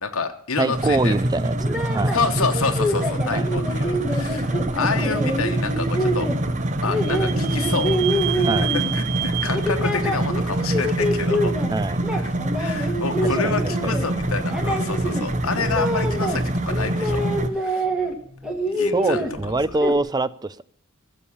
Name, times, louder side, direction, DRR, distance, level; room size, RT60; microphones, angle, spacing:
voice 1, 0.0-1.1 2.1-6.3 6.8-8.7 8.9-11.5 12.1-17.2 17.6-17.9 18.7-19.2, left 4 dB, 75° left, 1.2 m, -28 dB
voice 2, 0.6-2.1 3.3-3.5 8.5-8.7 11.7-12.0 13.4-13.5 18.9-20.6, right 2 dB, 20° right, 0.5 m, -24 dB
sound 1, 0.7-17.5, right 1 dB, 35° right, 0.9 m, -25 dB
sound 2, 1.5-9.1 9.5-11.7 12.0-16.4 16.7-18.1 18.4-20.0, equal, 5° right, 1.9 m, -27 dB
Vehicle / Squeak, 5.7-11.2, right 15 dB, 75° right, 0.7 m, -32 dB
15.5 x 7.2 x 7.1 m
head